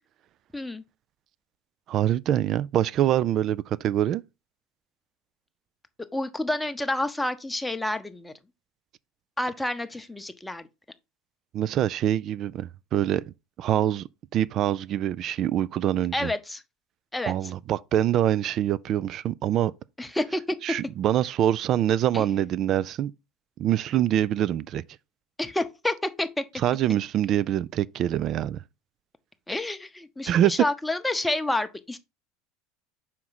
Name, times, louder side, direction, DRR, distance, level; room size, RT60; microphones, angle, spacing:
voice 1, 0.5-0.8 6.1-8.3 9.4-10.7 16.1-16.6 17.1-17.3 20.0-20.6 22.1-22.3 25.4-26.4 29.5-32.0, left 1 dB, 10° left, 0.8 m, -29 dB
voice 2, 1.9-4.2 11.5-13.2 13.6-14.0 14.3-16.3 17.3-19.7 20.6-23.1 23.6-24.8 26.6-28.6 30.3-30.5, right 11 dB, 45° right, 0.3 m, -24 dB
5.8 x 4.7 x 4.0 m
figure-of-eight pair, 75°, 0 cm